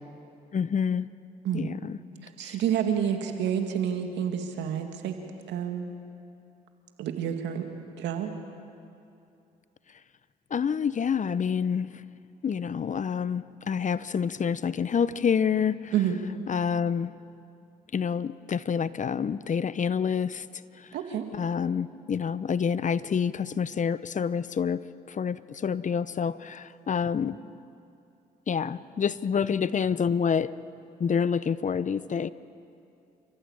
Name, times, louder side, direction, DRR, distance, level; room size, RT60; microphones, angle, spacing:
voice 1, 0.5-1.1 1.5-2.0 2.4-2.5 10.5-11.9 12.4-15.9 16.5-17.1 17.9-20.5 20.8-20.9 21.3-24.8 25.1-27.3 28.5-30.5 31.0-32.3, left 7 dB, 45° left, 16 dB, 0.8 m, -27 dB
voice 2, 2.2-5.2 5.5-5.9 7.0-7.7 8.0-8.3 15.9-16.2 20.9-21.3, right 9 dB, 80° right, 5 dB, 2.2 m, -29 dB
29.5 x 14.5 x 8.8 m, 2.6 s
supercardioid pair, 55°, 18 cm